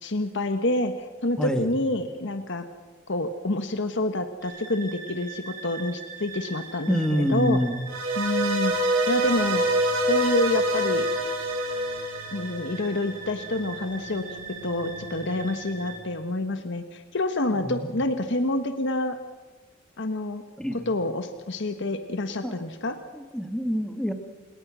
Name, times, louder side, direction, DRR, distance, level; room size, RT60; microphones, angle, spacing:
voice 1, 0.0-2.6 3.1-7.6 8.2-8.7 9.1-9.6 10.1-11.1 12.3-14.2 14.6-19.2 20.0-20.4 20.7-23.0, left 2 dB, 60° left, 8 dB, 1.3 m, -27 dB
sound 1, 4.4-16.0, right 3 dB, 40° right, 5.3 m, -41 dB
voice 2, 6.9-7.7 17.6-17.9 20.6-20.9 22.4-22.6 23.1-24.1, equal, 5° left, 8 dB, 1.5 m, -26 dB
sound 2, 7.9-13.1, right 1 dB, 70° right, 6.3 m, -26 dB
29.0 x 18.5 x 6.2 m, 1.3 s
head